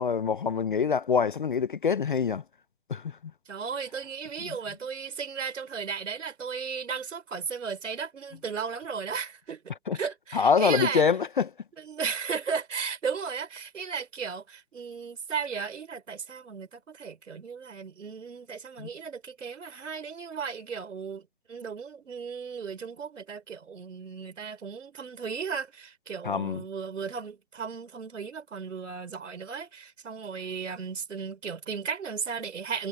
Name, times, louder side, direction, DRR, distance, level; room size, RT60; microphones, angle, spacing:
voice 1, 0.0-2.4 2.9-3.2 4.4-4.6 9.9-10.0 10.3-11.5 18.8-18.9 26.2-26.6, left 6 dB, 40° left, 0.6 m, -25 dB
voice 2, 3.5-11.0 11.8-32.9, right 6 dB, 70° right, 5.6 m, -35 dB
hypercardioid pair, 165°, 39 cm